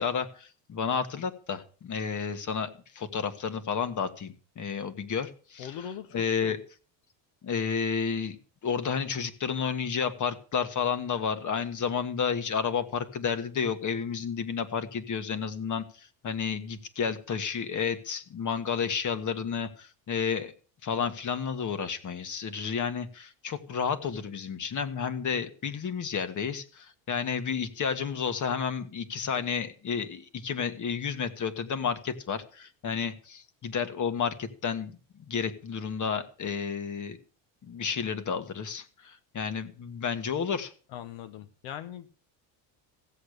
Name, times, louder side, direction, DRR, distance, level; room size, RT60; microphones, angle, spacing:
voice 1, 0.0-2.7 3.0-6.6 7.4-8.4 8.6-20.5 20.8-34.9 35.3-37.2 37.6-40.7, left 6 dB, 35° left, 11 dB, 1.7 m, -31 dB
voice 2, 5.6-6.2 6.4-6.6 40.9-42.1, left 9 dB, 80° left, 10 dB, 1.2 m, -40 dB
16.0 x 8.0 x 6.7 m, 0.40 s
cardioid pair, 130°, 49 cm